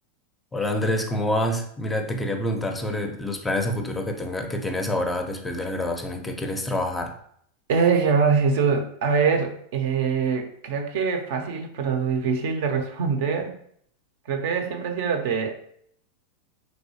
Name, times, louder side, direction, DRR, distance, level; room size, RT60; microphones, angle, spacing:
voice 1, 0.5-7.1, left 1 dB, 10° left, 4 dB, 0.5 m, -27 dB
voice 2, 7.7-13.5 14.3-15.5, right 5 dB, 65° right, 5 dB, 0.5 m, -23 dB
3.2 x 2.7 x 2.7 m, 0.66 s
hypercardioid pair, 100°, 0 cm